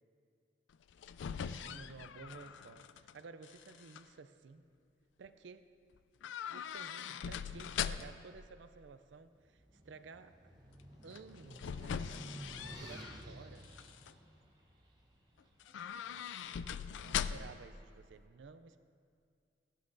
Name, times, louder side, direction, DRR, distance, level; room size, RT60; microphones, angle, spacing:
sound 1, 0.7-3.1 3.4-4.0 6.2-8.3 11.1-13.2 13.6-14.1 15.6-17.7 17.9-18.0, left 8 dB, 90° left, 0.3 m, -41 dB
voice 1, 1.4-4.7 5.2-5.7 6.5-10.3 11.0-12.4 12.8-13.7 16.1-16.2 17.0-18.8, right 4 dB, 90° right, 12 dB, 0.5 m, -54 dB
sound 2, 9.4-15.6, right 1 dB, 20° right, 1.0 m, -52 dB
voice 2, 15.6-17.3, left 2 dB, 65° left, -4 dB, 2.3 m, -64 dB
14.5 x 11.5 x 2.7 m, 2.3 s
head